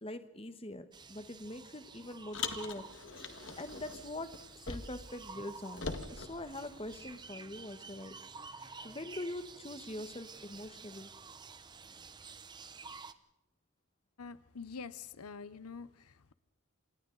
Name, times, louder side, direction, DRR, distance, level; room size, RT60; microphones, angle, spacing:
voice 1, 0.0-2.9 3.6-4.3 4.7-8.2 8.4-11.1, left 1 dB, 25° left, 10 dB, 1.3 m, -43 dB
sound 1, 0.9-13.1, right 4 dB, 20° right, 0.8 m, -51 dB
Car, 2.3-5.1 5.4-7.2, left 4 dB, 55° left, 1.7 m, -43 dB
voice 2, 14.2-16.3, left 5 dB, 85° left, 16 dB, 0.8 m, -46 dB
27.5 x 27.0 x 4.0 m, 0.87 s
head